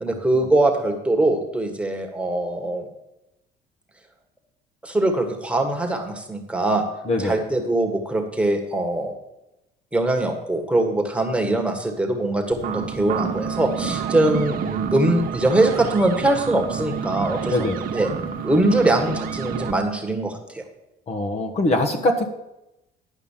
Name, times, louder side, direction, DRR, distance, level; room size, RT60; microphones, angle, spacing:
voice 1, 0.0-2.9 4.8-6.8 7.2-9.1 9.9-17.5 17.9-18.1 18.4-20.6, right 2 dB, 5° right, 3 dB, 1.6 m, -22 dB
voice 2, 7.0-7.4 17.5-17.8 21.1-22.2, left 1 dB, 40° left, 3 dB, 1.3 m, -22 dB
sound 1, 12.5-19.7, right 7 dB, 55° right, 1.1 m, -29 dB
10.5 x 5.6 x 7.3 m, 0.90 s
cardioid pair, 110°, 17 cm